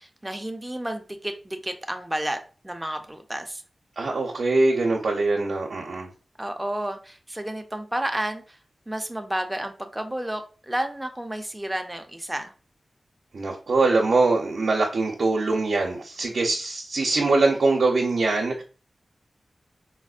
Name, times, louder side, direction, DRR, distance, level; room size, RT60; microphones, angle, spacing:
voice 1, 0.0-2.4 2.6-3.6 6.4-8.6 8.9-12.5, right 1 dB, 10° right, 5 dB, 0.5 m, -31 dB
voice 2, 4.0-6.1 13.3-18.6, right 3 dB, 80° right, -1 dB, 0.6 m, -23 dB
4.2 x 2.0 x 2.4 m, 0.35 s
wide cardioid pair, 80°, 0 cm